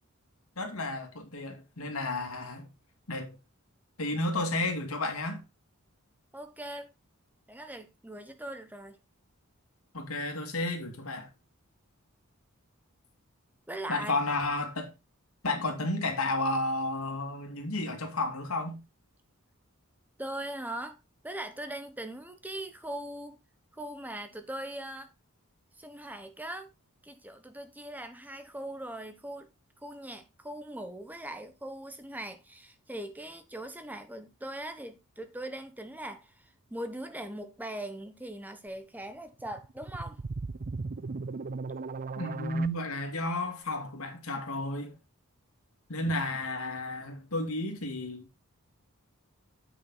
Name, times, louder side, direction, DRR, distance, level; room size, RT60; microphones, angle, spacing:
voice 1, 0.6-2.7 3.1-3.4 4.0-5.4 9.9-11.3 13.9-14.9 15.4-18.8 42.2-45.0 45.9-48.3, left 2 dB, 75° left, 2.4 m, -32 dB
voice 2, 6.3-6.9 7.5-9.0 13.7-14.2 20.2-21.0 21.2-23.4 23.7-25.1 25.8-26.7 27.0-29.5 29.8-40.2, right 1 dB, 10° right, 1.1 m, -40 dB
sound 1, 39.4-42.7, right 4 dB, 40° right, 0.5 m, -37 dB
8.5 x 6.1 x 4.0 m
head